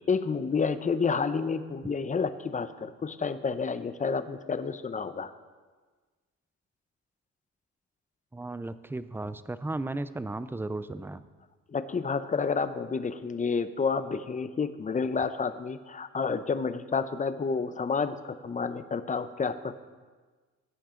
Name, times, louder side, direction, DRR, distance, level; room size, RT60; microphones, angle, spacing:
voice 1, 0.1-5.3 11.7-19.8, left 5 dB, 25° left, 11 dB, 0.7 m, -30 dB
voice 2, 8.3-11.2, right 2 dB, 5° right, 13 dB, 0.5 m, -35 dB
16.5 x 8.6 x 3.8 m, 1.4 s
cardioid pair, 90°, 30 cm